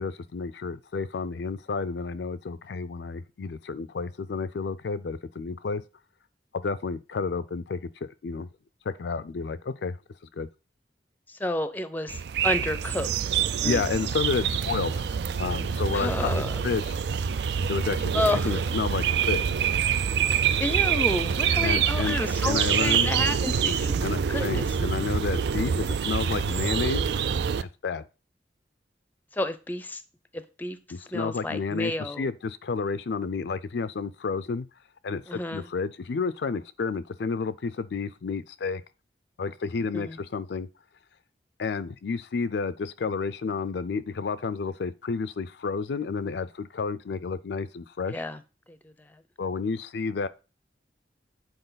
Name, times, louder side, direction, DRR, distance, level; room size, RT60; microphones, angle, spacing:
voice 1, 0.0-5.8 6.5-8.5 8.8-10.0 10.3-10.5 13.6-15.1 15.4-17.0 17.7-18.2 18.4-19.6 21.6-22.2 22.4-23.1 24.0-27.0 27.6-28.0 30.9-34.7 35.0-38.8 39.4-40.7 41.6-48.2 49.4-50.3, left 4 dB, 70° left, 0.4 m, -31 dB
voice 2, 11.3-13.1 13.6-13.8 15.9-16.6 18.1-18.6 20.6-24.7 29.3-30.0 30.3-30.8 31.1-32.3 35.3-35.7 39.9-40.2 48.1-48.4 48.7-49.2, left 1 dB, 10° left, 0.5 m, -31 dB
sound 1, 12.1-27.6, right 7 dB, 70° right, 0.4 m, -26 dB
7.9 x 4.4 x 4.0 m
head